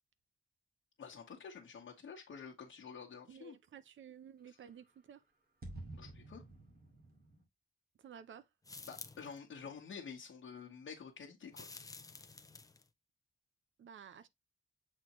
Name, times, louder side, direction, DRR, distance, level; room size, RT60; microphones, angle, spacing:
voice 1, 1.0-3.6 6.0-6.4 8.9-11.7, left 6 dB, 70° left, 1.2 m, -49 dB
voice 2, 3.3-5.2 8.0-8.5 13.8-14.3, right 8 dB, 65° right, 0.7 m, -53 dB
sound 1, 4.6-4.7 4.9-5.0 5.6-7.4, right 2 dB, 45° right, 2.2 m, -50 dB
sound 2, 8.6-9.4 11.5-12.9, left 3 dB, 15° left, 0.5 m, -51 dB
7.5 x 4.3 x 3.0 m
wide cardioid pair, 180°, 21 cm